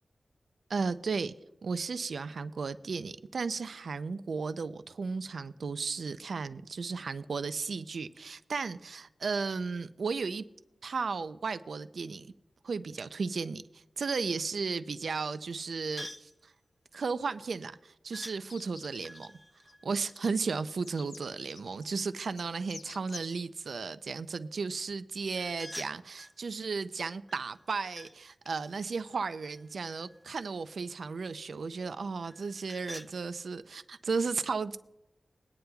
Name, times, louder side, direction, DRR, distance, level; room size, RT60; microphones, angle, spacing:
voice 1, 0.7-1.3 1.6-10.4 10.8-12.3 12.6-16.5 16.9-19.3 19.8-34.8, right 4 dB, 80° right, 0.4 m, -34 dB
sound 1, 16.0-16.4 18.1-18.4 19.0-20.8 25.3-26.4 27.3-28.2 28.4-30.3 32.2-33.1, equal, 5° left, 0.4 m, -48 dB
sound 2, 18.5-19.3 19.6-19.7 20.1-23.4, left 4 dB, 70° left, 0.4 m, -50 dB
21.5 x 9.5 x 2.3 m
wide cardioid pair, 120°, 0 cm